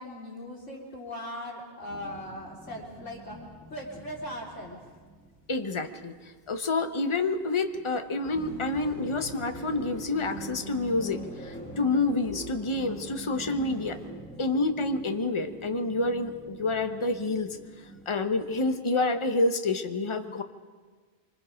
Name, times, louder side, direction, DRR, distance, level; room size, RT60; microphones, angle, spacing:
voice 1, 0.0-3.4 3.7-4.8, left 1 dB, 75° left, -3 dB, 3.6 m, -39 dB
sound 1, 1.9-7.4 7.7-18.8, right 1 dB, 5° left, 1.8 m, -45 dB
voice 2, 5.5-6.1 6.5-14.0 14.4-17.5 18.1-20.4, left 3 dB, 25° left, 7 dB, 1.0 m, -28 dB
Engine, 8.2-14.1, right 1 dB, 75° right, 5.9 m, -48 dB
25.0 x 25.0 x 5.1 m, 1.5 s
omnidirectional pair, 1.3 m